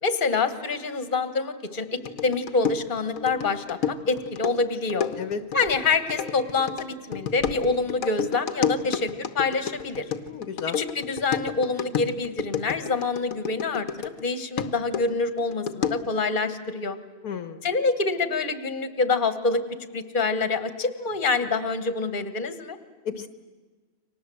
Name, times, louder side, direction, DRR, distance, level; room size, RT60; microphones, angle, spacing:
voice 1, 0.0-5.1 5.5-10.0 10.7-13.9 14.2-17.0 17.6-19.6 19.9-22.8, left 4 dB, 35° left, 11 dB, 1.6 m, -26 dB
sound 1, 2.1-14.2 14.6-16.2, left 7 dB, 65° left, 1.5 m, -31 dB
voice 2, 10.3-10.8 17.2-17.6 23.1-23.3, left 7 dB, 90° left, 10 dB, 1.9 m, -32 dB
30.0 x 24.5 x 7.8 m, 1.4 s
omnidirectional pair, 1.6 m